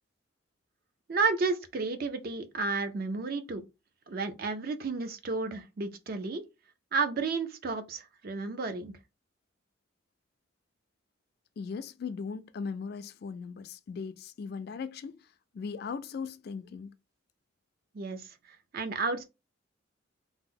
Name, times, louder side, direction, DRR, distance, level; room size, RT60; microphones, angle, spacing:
voice 1, 1.1-3.6 4.1-6.4 6.9-8.9 17.9-18.3 18.7-19.2, right 4 dB, 50° right, 0.5 m, -32 dB
voice 2, 11.6-15.2 15.5-16.9, left 5 dB, 55° left, 0.3 m, -38 dB
2.8 x 2.1 x 3.7 m
head